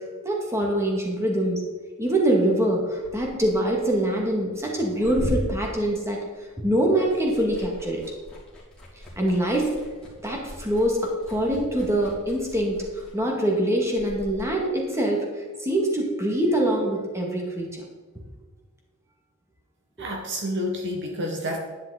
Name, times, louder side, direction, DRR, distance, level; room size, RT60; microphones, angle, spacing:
voice 1, 0.2-1.6 2.0-6.2 6.6-8.0 9.2-9.7 10.2-17.8, right 1 dB, 15° right, -1 dB, 2.1 m, -24 dB
Liquid, 2.9-6.6 6.9-14.4, equal, 5° left, 3.0 m, -38 dB
voice 2, 20.0-21.6, equal, 55° right, 1 dB, 1.6 m, -29 dB
11.0 x 9.4 x 4.2 m, 1.3 s
head